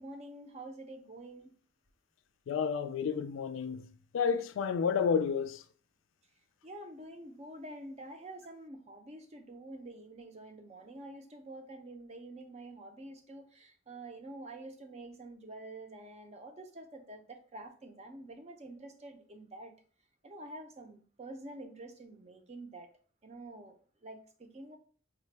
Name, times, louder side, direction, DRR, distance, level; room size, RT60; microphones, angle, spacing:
voice 1, 0.0-1.5 6.6-19.7 20.2-22.9 23.2-24.8, right 1 dB, 35° right, 0.5 m, -47 dB
voice 2, 2.5-3.9 4.1-5.6, left 6 dB, 75° left, 0.3 m, -30 dB
4.9 x 2.2 x 3.2 m
head